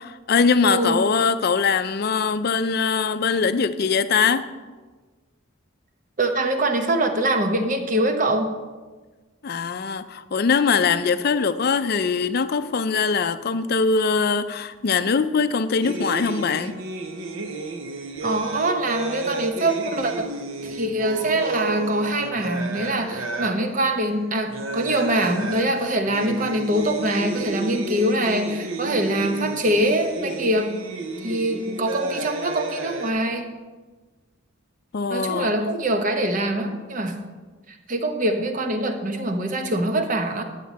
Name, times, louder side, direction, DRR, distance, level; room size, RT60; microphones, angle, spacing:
voice 1, 0.0-4.5 9.4-16.7 34.9-35.5, left 5 dB, 50° left, 0.4 m, -22 dB
voice 2, 0.6-1.1 6.2-8.5 18.2-20.4 20.6-30.8 31.2-33.5 35.1-37.2 37.7-40.4, right 1 dB, 40° right, 0.8 m, -24 dB
sound 1, 15.8-33.1, right 2 dB, 75° right, 0.8 m, -32 dB
10.5 x 7.4 x 4.1 m
head